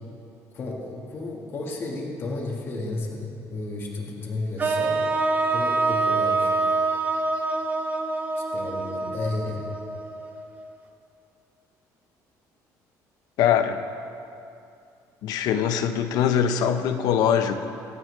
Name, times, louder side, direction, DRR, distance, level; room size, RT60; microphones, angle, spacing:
voice 1, 0.5-5.1 5.5-6.5 8.5-9.7, left 2 dB, 35° left, -2 dB, 1.7 m, -32 dB
sound 1, 4.6-10.7, right 3 dB, 25° right, 0.8 m, -26 dB
voice 2, 13.4-13.8 15.2-17.7, left 8 dB, 65° left, 8 dB, 0.8 m, -22 dB
25.5 x 8.9 x 3.3 m, 2.6 s
cardioid pair, 165°, 7 cm